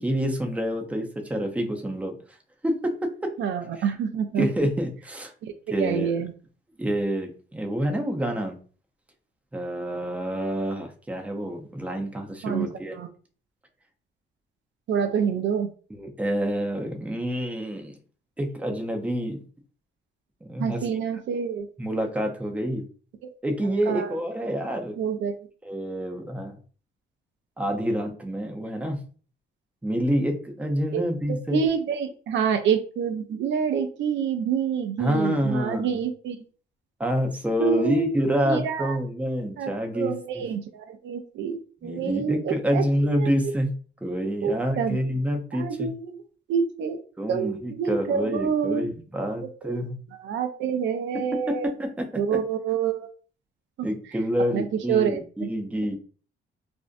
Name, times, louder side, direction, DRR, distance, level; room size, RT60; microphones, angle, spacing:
voice 1, 0.0-2.1 2.6-2.9 3.2-3.3 3.8-3.9 4.4-5.3 5.7-6.3 6.8-8.6 9.5-12.9 15.9-17.9 18.4-19.4 20.4-20.9 21.8-22.8 23.4-25.0 25.6-26.5 27.6-29.0 29.8-31.6 35.0-36.0 37.0-40.4 41.8-43.7 44.0-45.9 47.2-50.0 51.1-52.0 52.3-52.4 53.8-55.9, equal, 5° right, 3 dB, 0.5 m, -27 dB
voice 2, 3.4-4.5 5.4-6.3 12.4-12.7 13.0-13.1 14.9-15.7 20.6-21.7 23.2-23.3 23.9-24.1 25.0-25.3 30.9-31.0 31.5-36.4 37.6-38.1 38.4-39.0 39.6-42.8 43.2-43.3 44.4-45.0 45.5-46.2 46.5-47.0 47.3-48.8 49.6-49.7 50.2-51.7 52.2-53.1 53.8-53.9 54.5-55.5, right 7 dB, 70° right, 7 dB, 0.4 m, -27 dB
2.5 x 2.1 x 2.5 m, 0.40 s
cardioid pair, 90°, 20 cm